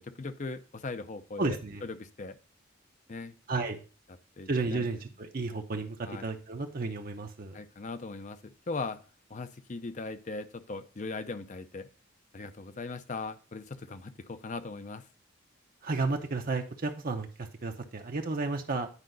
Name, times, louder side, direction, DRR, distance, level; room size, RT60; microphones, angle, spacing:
voice 1, 0.0-2.4 3.1-3.3 4.4-4.9 6.1-6.2 7.5-9.0 9.3-11.9 12.3-15.0, left 3 dB, 35° left, 11 dB, 0.6 m, -39 dB
voice 2, 1.4-1.9 3.5-3.8 4.5-7.6 15.8-18.9, right 3 dB, 45° right, 4 dB, 0.7 m, -32 dB
9.8 x 5.1 x 3.9 m, 0.36 s
head